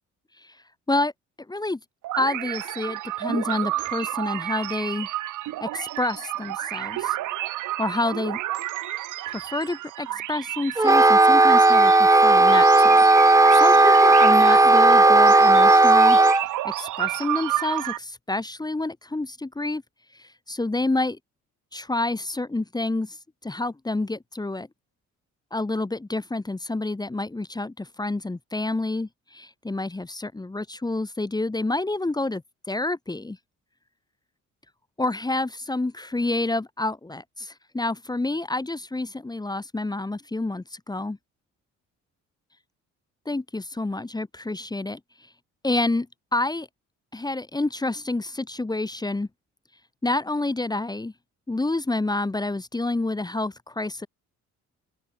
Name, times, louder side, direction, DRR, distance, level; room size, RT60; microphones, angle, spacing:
voice 1, 1.5-1.8 2.2-5.1 5.6-7.2 7.8-8.4 9.3-13.0 13.5-16.2 16.6-19.8 20.2-21.2 21.7-23.2 23.4-24.7 25.5-32.4 32.7-33.4 35.0-41.2 43.3-45.0 45.6-46.1 46.3-46.7 47.1-49.3 50.0-51.1 51.5-54.1, left 2 dB, 15° left, 1.1 m, -28 dB
sound 1, 2.0-18.0, right 15 dB, 85° right, 2.3 m, -31 dB
Wind instrument woodwind instrument, 10.8-16.4, right 2 dB, 10° right, 0.7 m, -15 dB
open air
cardioid pair, 90°, 30 cm